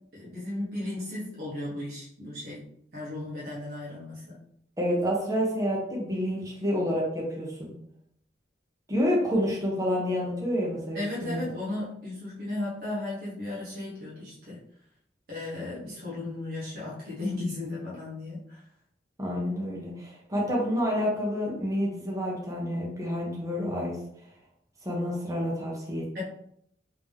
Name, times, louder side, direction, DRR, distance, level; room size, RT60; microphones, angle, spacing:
voice 1, 0.1-2.6 2.9-4.4 10.9-14.6 15.3-18.6 26.1-26.2, left 2 dB, 55° right, -7 dB, 1.2 m, -35 dB
voice 2, 4.8-7.7 8.9-11.4 19.2-24.0 24.8-26.2, equal, 20° right, -3 dB, 0.8 m, -28 dB
3.5 x 2.9 x 3.5 m, 0.71 s
head